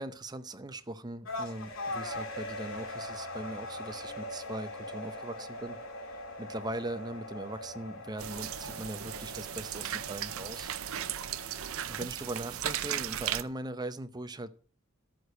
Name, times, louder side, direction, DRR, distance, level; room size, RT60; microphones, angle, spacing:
voice 1, 0.0-5.8 6.4-10.7 11.9-14.5, right 1 dB, 20° right, 11 dB, 0.7 m, -40 dB
sound 1, 1.2-12.0, left 1 dB, 70° left, 2.7 m, -41 dB
Brass instrument, 3.9-8.0, left 2 dB, 90° left, 3.7 m, -53 dB
sound 2, 8.2-13.4, right 11 dB, 80° right, 0.6 m, -36 dB
13.0 x 4.9 x 7.7 m, 0.43 s
head